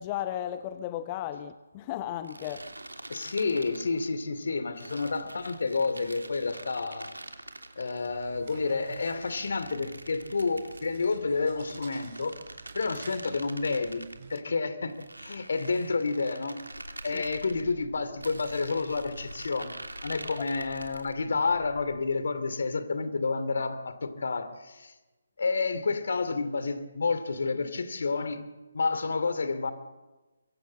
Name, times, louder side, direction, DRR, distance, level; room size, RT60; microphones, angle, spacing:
voice 1, 0.0-2.7 17.1-17.2, left 11 dB, 25° left, 11 dB, 0.8 m, -35 dB
sound 1, 2.2-4.1 4.8-8.1 8.8-10.9 11.5-14.2 14.9-17.6 18.2-21.2, right 2 dB, 80° right, 3.1 m, -45 dB
voice 2, 3.1-7.1 7.8-12.3 12.7-14.0 14.3-16.6 17.0-19.7 20.0-24.9 25.4-28.4 28.7-29.7, left 4 dB, 55° left, 12 dB, 2.6 m, -30 dB
sound 2, 8.0-14.4, right 5 dB, 45° right, 4.8 m, -51 dB
sound 3, 16.7-22.0, left 1 dB, 85° left, 5.5 m, -48 dB
24.0 x 23.5 x 7.6 m, 1.2 s
figure-of-eight pair, 145°, 0 cm